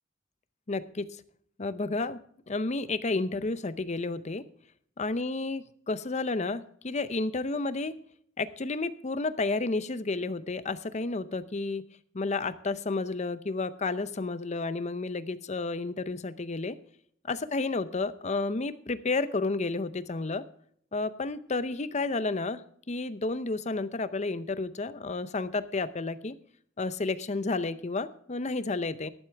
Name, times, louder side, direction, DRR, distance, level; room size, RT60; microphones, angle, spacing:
voice 1, 0.7-1.1 1.6-2.2 2.5-4.4 5.0-7.9 8.4-11.8 12.1-16.8 17.2-20.4 20.9-26.3 26.8-29.1, left 3 dB, 35° left, 13 dB, 0.7 m, -31 dB
13.5 x 11.0 x 3.4 m, 0.63 s
head